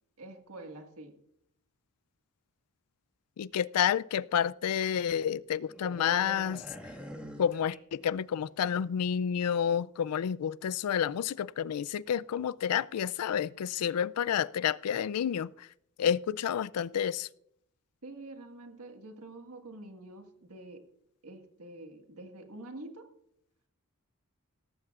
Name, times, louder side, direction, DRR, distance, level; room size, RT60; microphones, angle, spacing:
voice 1, 0.2-1.2 18.0-20.9 21.2-23.1, right 2 dB, 75° right, 1.7 m, -47 dB
voice 2, 3.4-6.6 7.4-15.7 16.0-17.3, left 8 dB, 80° left, 0.4 m, -30 dB
sound 1, 5.7-8.4 8.6-8.9, equal, 5° right, 1.7 m, -45 dB
17.5 x 14.5 x 2.4 m
head